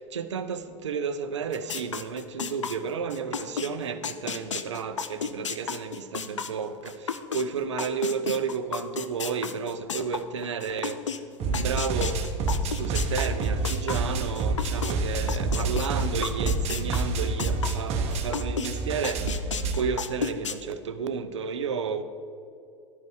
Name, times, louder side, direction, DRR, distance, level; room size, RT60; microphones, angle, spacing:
voice 1, 0.0-12.2 12.6-19.5 19.7-22.0, right 6 dB, 75° right, 11 dB, 0.6 m, -32 dB
sound 1, 1.5-7.4 7.8-14.9 15.3-18.7 19.0-20.5, left 6 dB, 85° left, 0.4 m, -33 dB
sound 2, 11.4-19.7, right 3 dB, 40° right, 1.0 m, -28 dB
11.5 x 5.3 x 4.6 m, 2.5 s
figure-of-eight pair, 80°, 15 cm